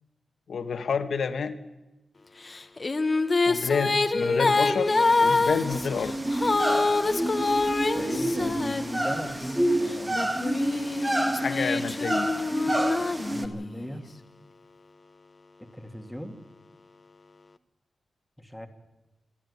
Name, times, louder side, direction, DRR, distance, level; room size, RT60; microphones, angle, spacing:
voice 1, 0.5-1.5 3.5-6.1 11.4-12.3, left 5 dB, 75° left, 9 dB, 1.6 m, -29 dB
Female singing, 2.5-9.4 10.1-13.9, left 3 dB, 30° left, 1.2 m, -26 dB
sound 1, 4.9-13.5, right 1 dB, 15° right, 1.8 m, -29 dB
voice 2, 7.9-10.2 13.3-14.1 15.7-16.4 18.4-18.7, equal, ahead, 6 dB, 2.3 m, -37 dB
26.5 x 10.5 x 9.7 m, 1.0 s
wide cardioid pair, 100°, 0 cm